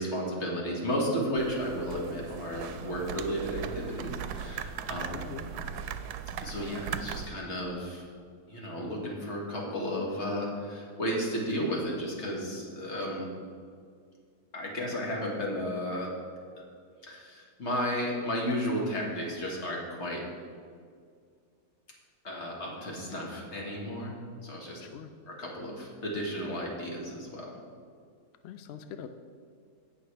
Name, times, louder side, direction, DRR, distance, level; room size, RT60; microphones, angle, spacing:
voice 1, 0.0-5.1 6.4-8.0 8.5-13.3 14.5-16.1 17.0-20.2 22.2-24.1 24.4-24.8 25.4-27.5, equal, 45° left, -2 dB, 2.0 m, -33 dB
sound 1, 1.4-7.3, right 8 dB, 85° right, 1.1 m, -38 dB
voice 2, 5.0-5.5 24.8-25.1 28.4-29.1, left 8 dB, 75° left, 8 dB, 0.6 m, -43 dB
17.0 x 5.7 x 3.3 m, 2.1 s
omnidirectional pair, 1.7 m